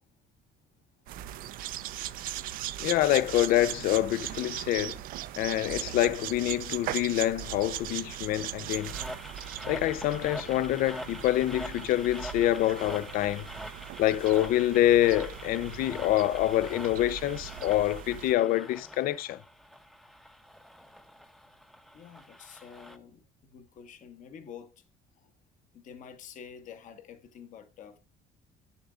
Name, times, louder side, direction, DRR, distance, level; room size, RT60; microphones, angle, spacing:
sound 1, 1.1-18.3, right 13 dB, 70° right, 0.5 m, -39 dB
voice 1, 2.8-5.0 5.3-8.9 9.7-13.5 14.0-19.4, left 14 dB, 75° left, 0.5 m, -26 dB
sound 2, 8.7-23.0, equal, ahead, 0.7 m, -45 dB
voice 2, 21.9-24.8 25.7-28.0, left 7 dB, 55° left, 1.3 m, -48 dB
10.5 x 6.9 x 2.4 m
cardioid pair, 130°, 15 cm